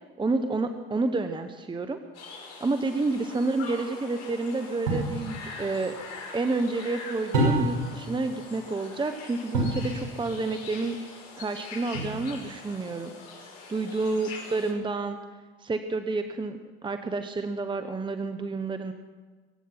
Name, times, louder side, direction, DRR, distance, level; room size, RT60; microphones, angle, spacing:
voice 1, 0.2-2.0 2.6-6.0 6.3-11.0 11.4-13.1 13.7-15.2 15.6-18.9, right 3 dB, 15° right, 8 dB, 1.0 m, -29 dB
sound 1, 2.1-14.7, left 4 dB, 60° left, 5.6 m, -43 dB
sound 2, 4.9-5.2 7.3-7.9 9.5-9.9 11.9-12.5, right 1 dB, 85° right, 5.3 m, -26 dB
22.5 x 9.3 x 5.8 m, 1.4 s
hypercardioid pair, 80°, 29 cm